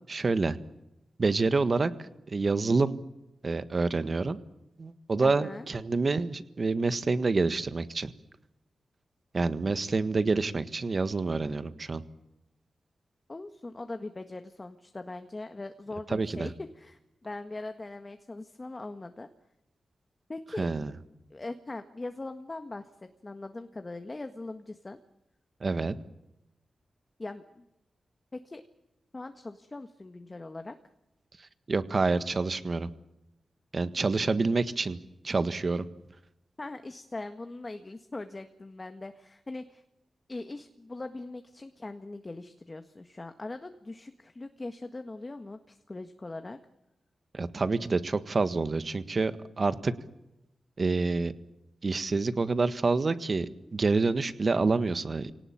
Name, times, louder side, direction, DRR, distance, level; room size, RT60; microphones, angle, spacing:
voice 1, 0.1-0.6 1.2-3.0 3.4-4.4 4.8-8.1 9.3-12.0 16.1-16.5 20.6-20.9 25.6-25.9 31.7-32.9 33.7-35.0 35.2-35.9 47.3-49.9 50.8-51.3 51.8-55.3, right 3 dB, 50° right, 12 dB, 1.6 m, -27 dB
voice 2, 5.2-5.7 13.3-19.3 20.3-20.7 21.3-22.8 23.2-25.0 27.2-27.6 28.3-28.6 29.1-30.7 36.6-39.8 40.3-46.6, left 2 dB, 35° left, 8 dB, 1.7 m, -41 dB
26.0 x 18.5 x 8.7 m, 0.94 s
cardioid pair, 55°, 0 cm